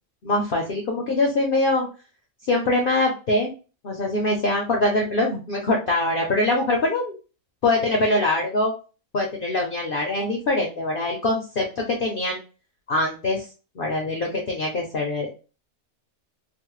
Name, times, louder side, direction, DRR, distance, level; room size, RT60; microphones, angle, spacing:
voice 1, 0.2-1.9 2.4-3.5 3.8-7.1 7.6-8.7 9.1-12.4 12.9-13.5 13.8-15.3, left 2 dB, 60° left, 1 dB, 0.6 m, -23 dB
3.0 x 2.1 x 3.0 m, 0.34 s
omnidirectional pair, 1.4 m